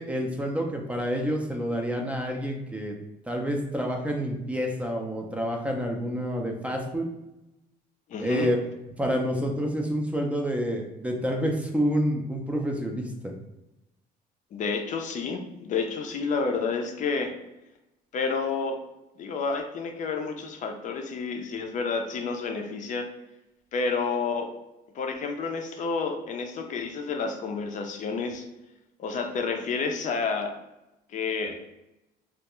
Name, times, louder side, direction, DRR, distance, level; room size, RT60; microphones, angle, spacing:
voice 1, 0.0-2.9 3.3-7.1 8.2-8.6 9.0-13.4, equal, 10° right, 1 dB, 0.5 m, -28 dB
voice 2, 8.1-8.5 14.5-17.3 18.1-18.8 19.2-23.1 23.7-24.5 24.9-28.4 29.0-30.5 31.1-31.6, left 4 dB, 45° left, 4 dB, 0.5 m, -30 dB
2.4 x 2.2 x 2.9 m, 0.96 s
cardioid pair, 110°, 17 cm